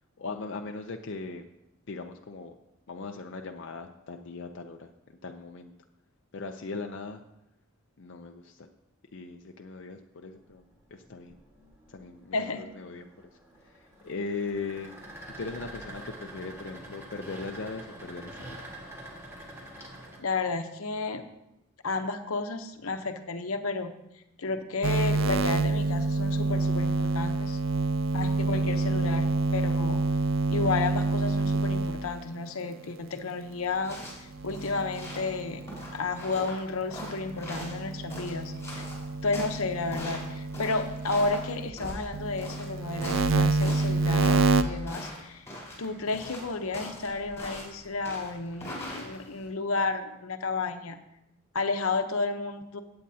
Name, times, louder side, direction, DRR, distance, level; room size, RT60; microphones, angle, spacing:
voice 1, 0.2-1.5 1.9-2.5 2.9-4.9 5.2-5.7 6.3-7.2 8.0-8.7 9.1-10.6 10.9-11.3 11.9-13.1 13.6-15.0 15.4-18.6, left 4 dB, 60° left, 4 dB, 0.6 m, -39 dB
sound 1, 10.4-20.2, right 1 dB, 10° right, 1.6 m, -46 dB
voice 2, 12.3-12.6 20.2-21.2 21.8-23.9 24.4-27.6 28.1-30.0 30.5-35.6 35.9-38.9 39.2-45.5 45.8-51.0 51.5-52.8, left 3 dB, 80° left, 7 dB, 0.9 m, -32 dB
sound 2, 24.8-32.3 34.3-36.4 36.9-41.7 42.1-44.6, right 3 dB, 60° right, 0.5 m, -28 dB
sound 3, 33.7-49.5, equal, 15° left, 4.3 m, -42 dB
16.0 x 8.7 x 2.8 m, 0.88 s
head